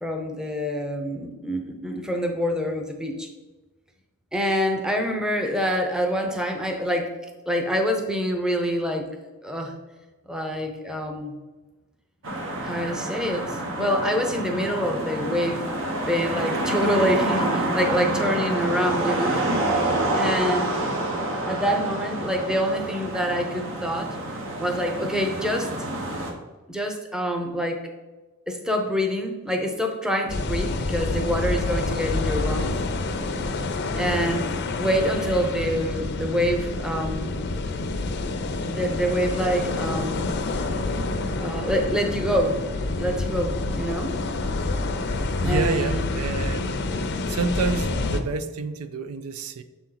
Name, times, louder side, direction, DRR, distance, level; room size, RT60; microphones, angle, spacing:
voice 1, 0.0-3.3 4.3-7.1 7.5-9.1 9.4-9.8 10.3-11.4 12.6-15.6 16.1-20.7 21.4-24.2 24.6-25.7 26.7-27.8 28.5-32.7 33.9-34.5 34.8-37.4 38.7-40.3 41.4-42.6 42.9-44.2 45.4-46.1, equal, 5° right, 3 dB, 0.7 m, -26 dB
sound 1, 12.2-26.3, right 2 dB, 60° right, 1.1 m, -27 dB
sound 2, 30.3-48.2, left 2 dB, 50° left, 0.6 m, -27 dB
voice 2, 45.4-46.8 47.3-49.6, right 4 dB, 75° right, 11 dB, 0.4 m, -28 dB
6.9 x 4.4 x 3.9 m, 1.2 s
head